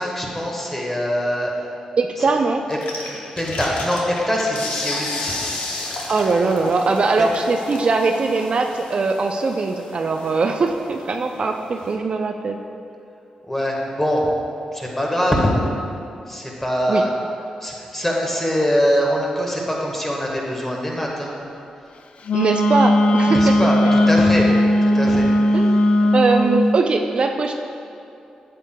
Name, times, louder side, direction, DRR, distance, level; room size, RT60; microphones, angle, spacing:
voice 1, 0.0-1.6 2.2-2.3 2.7-2.8 3.0-5.3 7.2-7.3 13.5-14.3 14.7-15.5 16.3-17.1 17.6-21.3 23.3-24.5 24.8-25.8, equal, 15° left, -2 dB, 1.4 m, -23 dB
voice 2, 2.0-2.6 6.1-12.6 16.9-17.0 22.3-23.6 25.5-25.7 26.0-27.5, right 3 dB, 50° right, 4 dB, 0.4 m, -21 dB
sound 1, 2.7-12.0, left 2 dB, 85° left, 0.8 m, -32 dB
Wind instrument woodwind instrument, 22.3-26.7, left 1 dB, 65° left, 0.3 m, -17 dB
8.1 x 7.4 x 2.2 m, 2.6 s
cardioid pair, 65°, 2 cm